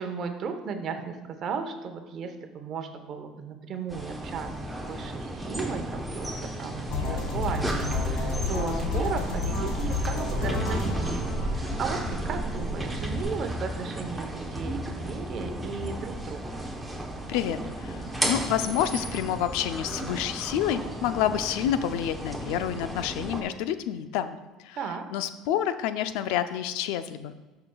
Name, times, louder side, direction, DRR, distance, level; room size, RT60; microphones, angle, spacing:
voice 1, 0.0-4.5 4.8-16.7 24.7-25.0, right 5 dB, 45° right, 7 dB, 0.9 m, -35 dB
sound 1, 3.9-23.4, right 1 dB, 5° right, 0.9 m, -34 dB
sound 2, 6.9-12.9, left 4 dB, 60° left, 1.8 m, -32 dB
sound 3, 6.9-13.2, right 1 dB, 15° left, 2.2 m, -35 dB
voice 2, 17.3-24.4 24.6-24.8 25.1-27.3, left 10 dB, 80° left, 11 dB, 0.5 m, -28 dB
12.5 x 5.8 x 2.3 m, 1.2 s
cardioid pair, 135°, 0 cm